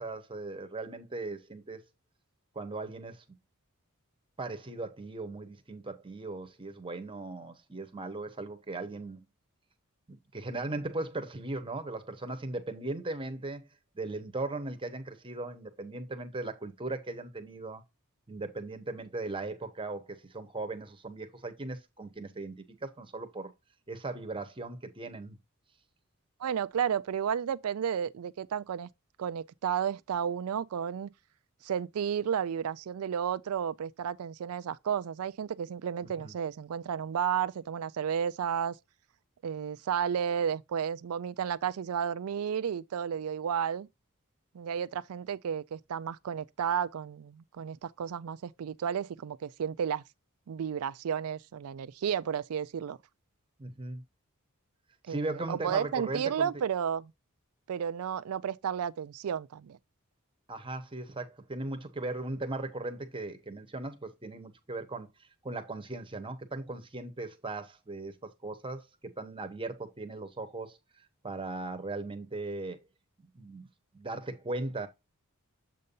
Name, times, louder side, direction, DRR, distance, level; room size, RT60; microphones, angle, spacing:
voice 1, 0.0-1.8 2.5-3.2 4.4-9.2 10.1-13.7 13.9-17.8 18.3-23.5 23.9-25.4 36.0-36.3 53.6-54.0 55.1-56.5 60.5-70.8 71.2-72.8 73.3-73.7 73.9-74.9, right 2 dB, 25° right, 0.9 m, -38 dB
voice 2, 26.4-28.9 29.2-31.1 31.6-38.8 39.4-43.9 44.5-50.0 50.5-53.0 55.1-57.1 57.7-59.8, right 8 dB, 80° right, 0.4 m, -32 dB
7.6 x 2.7 x 5.3 m
head